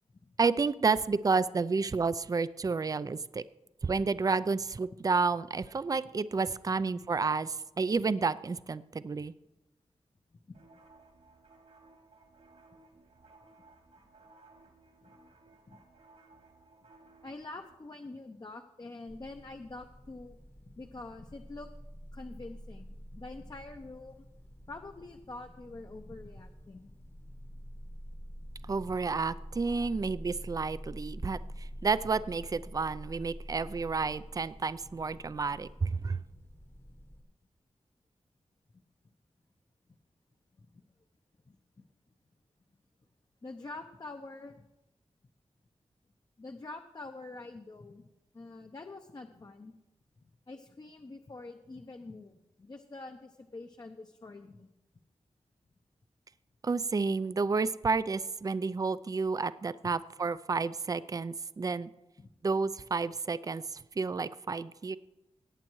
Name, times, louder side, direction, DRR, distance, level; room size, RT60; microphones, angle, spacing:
voice 1, 0.4-3.4 3.8-9.3 28.7-36.2 56.6-61.9 62.4-63.6 64.0-65.0, right 4 dB, 30° right, 16 dB, 0.4 m, -30 dB
sound 1, 10.5-17.8, right 3 dB, 75° right, 2.5 m, -59 dB
voice 2, 17.2-20.4 20.6-21.7 22.1-24.2 24.7-26.9 40.6-40.8 41.5-41.9 43.4-44.7 46.4-48.0 48.3-49.7 50.2-54.7 59.8-59.9 62.2-62.3, left 2 dB, 35° left, 5 dB, 0.7 m, -46 dB
sound 2, 19.1-37.2, equal, 20° left, 1.0 m, -47 dB
18.0 x 8.6 x 3.1 m, 0.95 s
wide cardioid pair, 70°, 12 cm